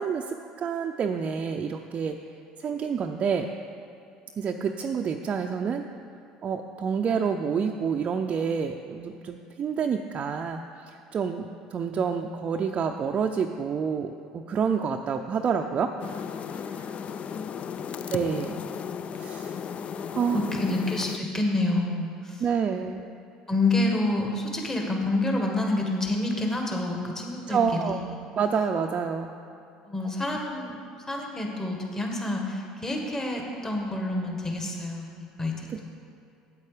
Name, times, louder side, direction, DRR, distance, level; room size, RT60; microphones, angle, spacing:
voice 1, 0.0-2.2 2.6-3.5 4.4-5.8 6.4-15.9 16.6-17.0 18.1-18.6 19.1-19.6 20.1-20.4 22.4-23.0 27.5-28.0 28.4-29.3 35.7-35.9, right 6 dB, 40° right, 3 dB, 0.5 m, -28 dB
sound 1, 16.0-21.2, left 7 dB, 40° left, 0.4 m, -35 dB
voice 2, 20.3-22.4 22.7-22.8 23.5-28.2 29.9-30.8 31.1-35.9, left 2 dB, 15° left, 1 dB, 1.6 m, -28 dB
8.3 x 8.3 x 5.0 m, 2.6 s
hypercardioid pair, 75°, 3 cm